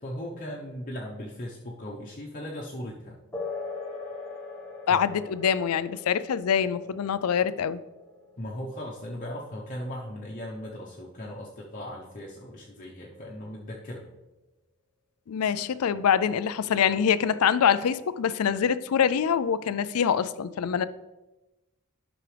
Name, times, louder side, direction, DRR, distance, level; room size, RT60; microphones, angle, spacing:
voice 1, 0.0-3.2 4.9-5.2 8.4-14.1, equal, 40° left, -4 dB, 1.0 m, -38 dB
sound 1, 3.3-11.3, left 3 dB, 10° left, 1.2 m, -42 dB
voice 2, 4.9-7.8 15.3-20.9, left 7 dB, 80° left, 15 dB, 0.4 m, -25 dB
11.0 x 6.0 x 3.4 m, 1.1 s
head